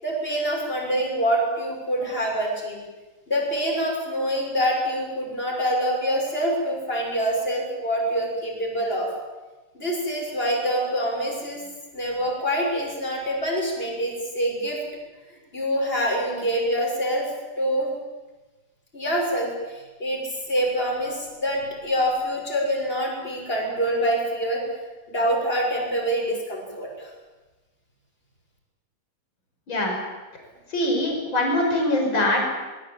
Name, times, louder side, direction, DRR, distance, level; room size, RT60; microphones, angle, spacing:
voice 1, 0.0-2.8 3.3-9.1 9.7-11.6 11.9-14.8 15.3-17.3 17.6-17.9 18.9-24.6 25.1-27.1, equal, 25° left, -1 dB, 7.0 m, -25 dB
voice 2, 29.7-30.0 30.7-32.5, left 1 dB, 65° left, 1 dB, 6.5 m, -23 dB
24.0 x 21.5 x 8.7 m, 1.2 s
omnidirectional pair, 2.3 m